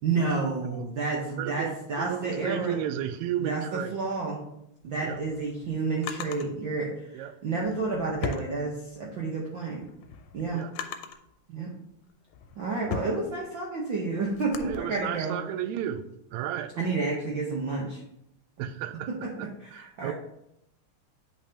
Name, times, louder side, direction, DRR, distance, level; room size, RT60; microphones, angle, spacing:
voice 1, 0.0-2.8 3.4-3.6 3.9-4.4 4.8-9.8 10.3-10.6 11.5-11.7 12.6-15.4 16.8-18.0 19.6-20.1, right 3 dB, 65° right, -3 dB, 1.2 m, -30 dB
voice 2, 1.4-4.0 5.0-5.2 7.1-7.4 10.5-10.7 14.6-16.7 18.6-20.1, right 10 dB, 80° right, 12 dB, 1.8 m, -34 dB
Drawer open or close, 4.8-6.5 7.5-9.2 9.6-11.3 11.9-14.8, left 6 dB, 85° left, 2.0 m, -39 dB
8.7 x 5.5 x 2.8 m, 0.80 s
omnidirectional pair, 3.3 m